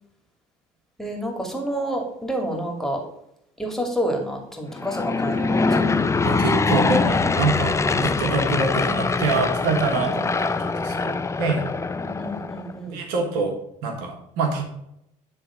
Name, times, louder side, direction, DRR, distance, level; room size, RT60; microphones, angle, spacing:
voice 1, 1.0-3.0 3.6-5.8 9.9-10.1 12.0-13.0, right 1 dB, ahead, 1 dB, 2.5 m, -29 dB
Aircraft / Engine, 4.7-12.7, left 4 dB, 15° left, 0.6 m, -23 dB
voice 2, 6.2-11.7 12.9-13.6 13.8-14.7, right 3 dB, 75° right, 4 dB, 1.6 m, -25 dB
9.7 x 3.7 x 5.1 m, 0.78 s
supercardioid pair, 75°, 16 cm